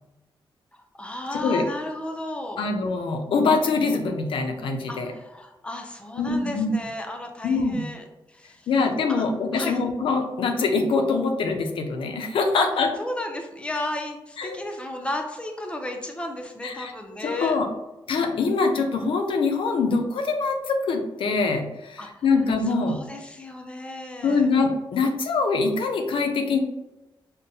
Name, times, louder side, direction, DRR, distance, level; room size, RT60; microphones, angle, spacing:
voice 1, 0.7-2.6 4.9-8.7 9.1-9.8 12.6-12.7 13.0-17.6 22.0-22.2 22.7-24.5, left 1 dB, 10° left, 3 dB, 0.4 m, -34 dB
voice 2, 2.6-5.1 6.2-6.7 7.4-7.8 8.7-12.9 14.4-14.6 16.6-16.9 17.2-17.7 18.1-23.0 24.2-26.6, left 4 dB, 70° left, 4 dB, 0.5 m, -24 dB
5.3 x 2.1 x 2.7 m, 0.99 s
wide cardioid pair, 150°, 9 cm